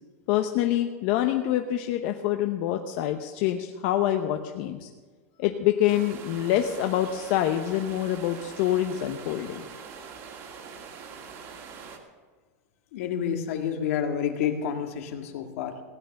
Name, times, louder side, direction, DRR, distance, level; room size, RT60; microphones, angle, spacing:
voice 1, 0.3-4.9 5.4-9.7, left 12 dB, 45° left, 5 dB, 0.8 m, -26 dB
sound 1, 5.9-12.0, right 6 dB, 35° right, 2.1 m, -43 dB
voice 2, 12.9-15.8, left 8 dB, 65° left, 5 dB, 1.8 m, -29 dB
17.0 x 9.6 x 6.5 m, 1.4 s
supercardioid pair, 165°, 8 cm